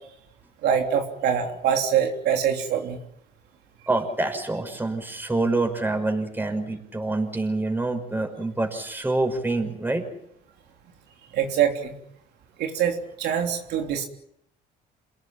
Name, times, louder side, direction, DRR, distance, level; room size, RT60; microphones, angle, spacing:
voice 1, 0.6-3.0 11.3-12.0 12.6-14.0, right 8 dB, 80° right, 3 dB, 3.4 m, -24 dB
voice 2, 3.9-10.0, right 2 dB, 10° right, 5 dB, 6.0 m, -26 dB
28.0 x 18.0 x 8.9 m, 0.72 s
cardioid pair, 110°, 17 cm